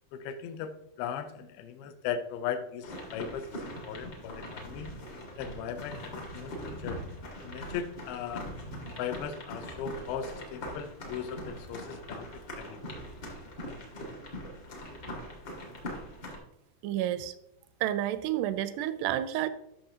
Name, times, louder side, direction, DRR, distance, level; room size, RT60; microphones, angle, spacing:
voice 1, 0.1-0.7 1.0-4.9 5.4-7.0 7.4-8.5 9.0-13.0, left 8 dB, 80° left, 8 dB, 2.3 m, -38 dB
sound 1, 2.8-16.4, equal, 55° left, 1.2 m, -42 dB
voice 2, 16.8-17.3 17.8-19.5, right 12 dB, 85° right, 14 dB, 2.5 m, -30 dB
13.0 x 5.9 x 2.8 m, 0.81 s
omnidirectional pair, 4.7 m